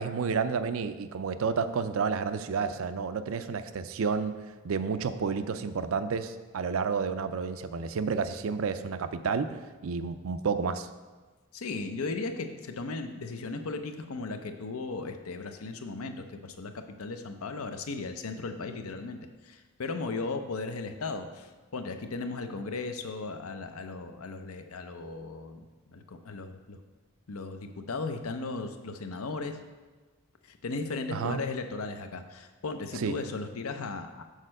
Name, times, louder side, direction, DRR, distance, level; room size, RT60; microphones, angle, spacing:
voice 1, 0.0-4.3 4.6-10.9 31.1-31.4 33.0-33.1, right 5 dB, 65° right, 11 dB, 0.4 m, -30 dB
voice 2, 11.5-26.8 27.3-29.6 30.4-34.2, left 3 dB, 75° left, 7 dB, 0.6 m, -36 dB
6.5 x 4.3 x 6.4 m, 1.3 s
head